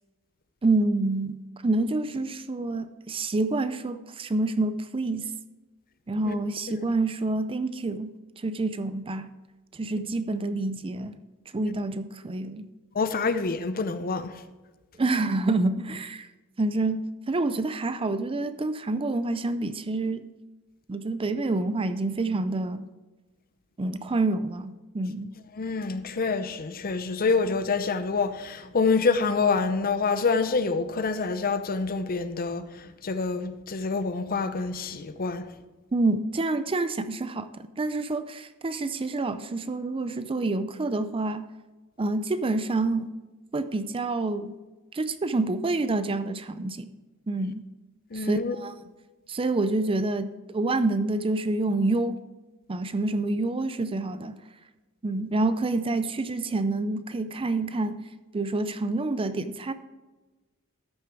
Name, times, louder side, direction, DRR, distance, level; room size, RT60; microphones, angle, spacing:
voice 1, 0.6-1.4 1.6-5.3 6.1-8.1 8.4-9.3 9.7-11.2 11.5-12.7 15.0-16.3 16.6-20.2 20.9-22.8 23.8-25.3 35.9-41.5 42.0-43.1 43.5-44.6 44.9-46.9 47.3-47.6 48.1-48.7 49.3-52.2 52.7-54.4 55.0-58.1 58.3-59.7, right 2 dB, 25° right, 0.4 m, -27 dB
voice 2, 12.9-14.4 25.6-35.5 48.1-48.6, left 4 dB, 40° left, 0.7 m, -27 dB
13.5 x 6.6 x 4.6 m
head